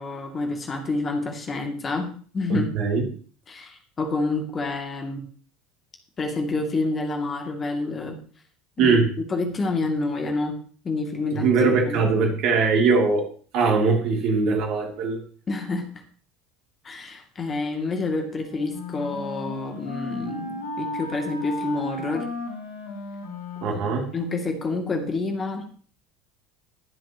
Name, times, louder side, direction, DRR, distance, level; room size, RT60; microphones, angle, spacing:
voice 1, 0.0-2.7 3.5-5.3 6.2-8.2 8.8-9.0 9.3-10.6 10.8-11.5 11.9-12.0 15.5-15.9 16.8-22.3 24.1-25.6, left 3 dB, 30° left, 3 dB, 2.5 m, -28 dB
voice 2, 2.5-3.0 8.8-9.1 11.3-13.3 13.5-15.2 23.6-24.1, right 4 dB, 50° right, 2 dB, 2.9 m, -21 dB
Wind instrument woodwind instrument, 18.3-24.4, left 2 dB, 75° left, 2.9 m, -35 dB
21.5 x 7.7 x 3.0 m, 0.43 s
figure-of-eight pair, 70°, 0 cm